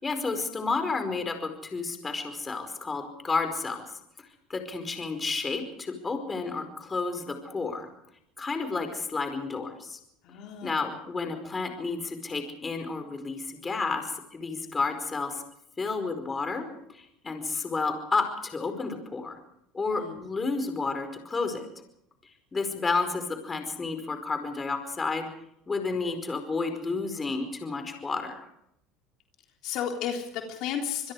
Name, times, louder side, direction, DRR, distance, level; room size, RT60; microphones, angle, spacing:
voice 1, 0.0-3.8 4.2-7.9 8.4-10.0 10.6-15.4 15.8-16.6 16.9-19.4 19.7-21.7 22.5-25.3 25.7-28.4, left 4 dB, 20° left, 6 dB, 4.9 m, -31 dB
voice 2, 10.2-10.8 19.9-20.3 29.6-31.1, left 8 dB, 60° left, 2 dB, 3.6 m, -33 dB
26.5 x 21.5 x 4.9 m, 0.75 s
supercardioid pair, 110°, 0 cm